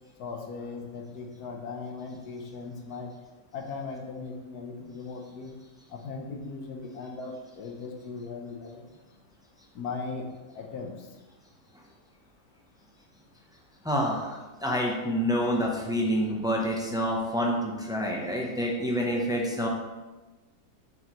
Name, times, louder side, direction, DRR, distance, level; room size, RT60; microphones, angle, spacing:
voice 1, 0.2-3.1 3.5-5.5 5.9-8.8 9.7-10.3 10.6-10.9, left 4 dB, 75° left, 2 dB, 1.4 m, -38 dB
voice 2, 13.8-19.7, equal, 5° right, -1 dB, 0.6 m, -27 dB
7.5 x 5.4 x 3.1 m, 1.2 s
omnidirectional pair, 1.7 m